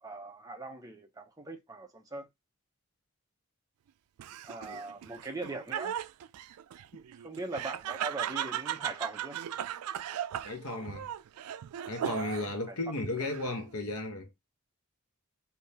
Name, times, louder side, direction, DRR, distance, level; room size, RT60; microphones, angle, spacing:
voice 1, 0.0-2.3 4.4-6.0 7.2-9.4 12.7-12.8, right 2 dB, 15° right, 0.7 m, -40 dB
Laughter, 4.2-12.6 13.0-13.7, right 10 dB, 90° right, 0.3 m, -37 dB
voice 2, 10.4-11.1 11.9-14.3, left 2 dB, 80° left, 0.9 m, -35 dB
3.4 x 2.8 x 2.8 m
head